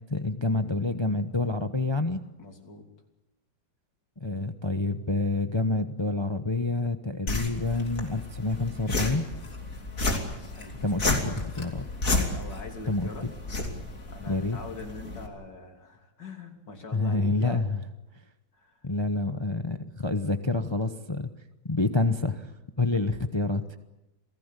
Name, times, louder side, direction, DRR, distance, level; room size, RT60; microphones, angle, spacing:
voice 1, 0.1-2.2 4.2-9.2 10.8-11.8 12.9-13.1 14.3-14.6 16.9-17.8 18.8-21.3 21.6-22.5 22.8-23.8, left 2 dB, 20° left, 8 dB, 0.7 m, -28 dB
voice 2, 2.4-2.9 10.6-11.8 12.3-13.3 14.1-17.7 18.6-18.8, left 3 dB, 70° left, 3 dB, 3.7 m, -43 dB
sound 1, 7.3-15.3, left 2 dB, 45° left, 3.5 m, -32 dB
27.5 x 18.0 x 8.3 m, 0.99 s
omnidirectional pair, 2.0 m